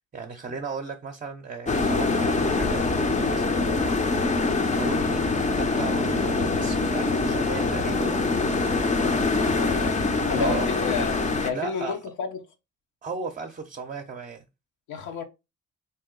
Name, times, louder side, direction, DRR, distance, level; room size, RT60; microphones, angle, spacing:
voice 1, 0.1-4.4 4.8-8.2 10.4-10.7 11.5-12.0 13.0-14.4, right 5 dB, 25° right, 0.6 m, -36 dB
sound 1, 1.7-11.5, left 3 dB, 25° left, 0.6 m, -24 dB
voice 2, 9.1-10.0 10.3-12.4 14.9-15.2, left 5 dB, 80° left, 0.9 m, -31 dB
3.6 x 2.7 x 3.8 m
cardioid pair, 90°, 30 cm